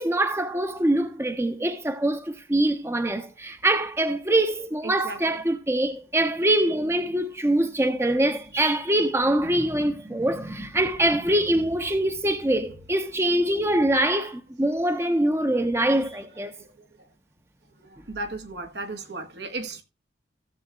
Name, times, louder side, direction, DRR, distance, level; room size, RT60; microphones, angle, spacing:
voice 1, 0.0-16.5, right 1 dB, 15° right, 0.9 m, -24 dB
voice 2, 4.8-5.3 17.8-19.8, right 2 dB, 70° right, 1.6 m, -35 dB
16.5 x 7.2 x 2.4 m
head